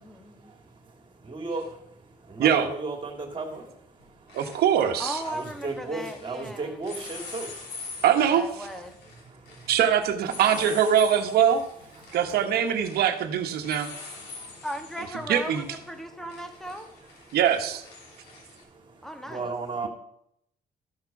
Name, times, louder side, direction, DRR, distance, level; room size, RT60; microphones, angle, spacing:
voice 1, 0.0-0.5 5.0-6.8 8.3-8.9 14.6-16.9 19.0-19.5, equal, ahead, 6 dB, 1.3 m, -37 dB
voice 2, 1.0-4.9 5.2-8.0 9.0-9.7 11.9-13.0 13.6-14.7 15.5-15.7 16.0-17.4 18.0-19.9, right 3 dB, 30° right, 1 dB, 2.6 m, -38 dB
sound 1, 1.6-1.7 3.4-3.7 4.0-6.4 6.8-18.6, left 4 dB, 75° left, 3.1 m, -45 dB
voice 3, 4.3-5.2 8.0-8.4 9.7-11.6 12.1-13.9 15.3-15.6 17.3-17.8, right 9 dB, 70° right, 6 dB, 1.3 m, -22 dB
13.5 x 4.5 x 5.9 m, 0.75 s
cardioid pair, 110°, 17 cm